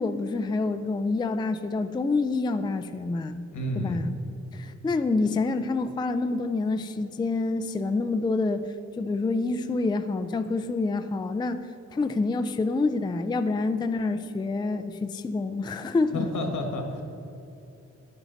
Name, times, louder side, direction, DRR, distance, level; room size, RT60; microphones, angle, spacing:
voice 1, 0.0-3.5 3.8-4.1 4.5-8.7 9.0-11.6 11.9-16.3, left 3 dB, 15° left, 9 dB, 0.3 m, -27 dB
voice 2, 3.5-4.0 16.1-17.0, left 1 dB, 80° left, 3 dB, 1.6 m, -30 dB
11.0 x 9.0 x 3.9 m, 2.9 s
wide cardioid pair, 130°, 30 cm